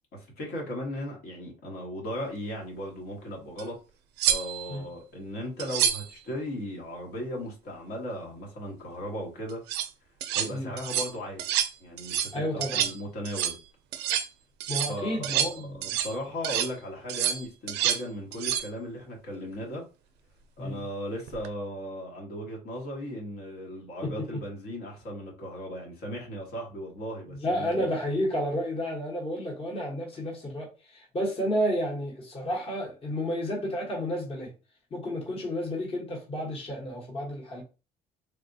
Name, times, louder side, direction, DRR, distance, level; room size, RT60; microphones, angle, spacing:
voice 1, 0.1-3.8 4.3-9.6 10.3-11.5 11.8-13.6 14.8-19.8 20.6-27.9, equal, 70° left, 1.3 m, -37 dB
sharpening a knife, 3.6-3.7 4.2-4.8 5.6-6.1 9.5-9.9 10.2-10.5 10.8-11.1 11.4-11.7 12.0-12.4 12.6-13.0 13.3-13.6 13.9-14.3 14.6-16.2 16.4-16.7 17.1-18.0 18.3-18.7 21.3-21.5, right 10 dB, 85° right, 0.4 m, -28 dB
voice 2, 12.3-12.9 14.7-15.7 20.6-20.8 24.0-24.4 27.4-34.5 34.9-37.6, equal, 35° left, 1.1 m, -31 dB
3.4 x 2.3 x 2.6 m
cardioid pair, 110°, 17 cm